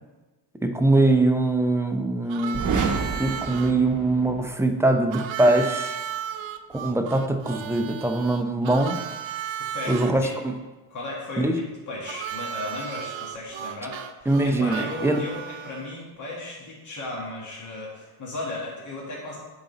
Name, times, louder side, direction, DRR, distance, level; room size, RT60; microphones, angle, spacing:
voice 1, 0.6-2.6 3.2-6.0 6.7-8.9 9.9-10.5 11.4-11.6 14.3-15.2, right 2 dB, 5° right, 5 dB, 0.5 m, -22 dB
Harmonica, 2.3-3.7 5.1-10.1 12.0-16.0, right 9 dB, 65° right, 0.6 m, -34 dB
sound 1, 2.5-4.5, right 5 dB, 40° right, 1.0 m, -28 dB
voice 2, 9.6-10.3 10.9-19.4, left 2 dB, 35° left, -5 dB, 1.8 m, -35 dB
8.8 x 4.0 x 4.0 m, 1.2 s
cardioid pair, 100°, 49 cm